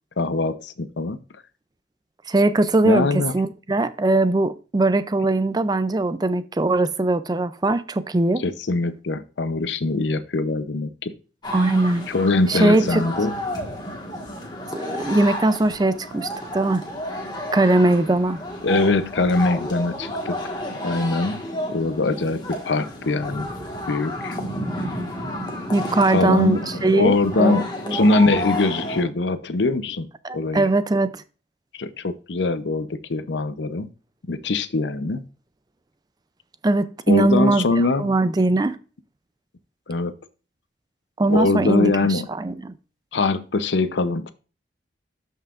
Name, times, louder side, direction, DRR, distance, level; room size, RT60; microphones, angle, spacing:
voice 1, 0.2-1.2 2.8-3.3 8.4-11.1 12.1-13.3 18.6-21.4 21.7-23.5 23.9-24.4 26.1-30.1 30.3-30.7 31.7-33.9 34.3-35.2 37.1-38.1 39.9-40.2 41.3-42.3 43.1-44.3, left 3 dB, 90° left, 0.7 m, -22 dB
voice 2, 2.3-3.1 3.3-8.4 11.5-12.1 12.5-13.0 14.7-16.8 17.5-18.4 25.7-28.0 30.2-31.2 36.6-37.7 38.0-38.8 41.2-42.7, right 2 dB, 25° right, 0.4 m, -20 dB
sound 1, 11.4-29.0, left 1 dB, 25° left, 1.6 m, -31 dB
12.5 x 5.6 x 2.5 m
head